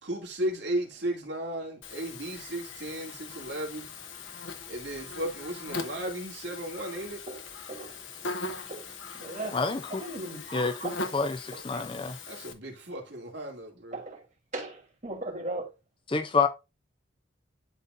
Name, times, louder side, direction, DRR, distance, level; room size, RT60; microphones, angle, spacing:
voice 1, 0.0-3.9 4.7-7.2 12.3-14.0, right 1 dB, 60° right, 2.7 m, -35 dB
Buzz, 1.8-12.5, left 3 dB, 70° left, 1.1 m, -40 dB
voice 2, 7.7-9.6 9.9-11.1 11.5-11.8 13.9-14.2 14.5-15.7, right 2 dB, 35° right, 3.4 m, -39 dB
voice 3, 9.5-10.0 10.5-12.2 16.1-16.5, left 4 dB, 25° left, 0.5 m, -28 dB
12.0 x 4.1 x 2.6 m
head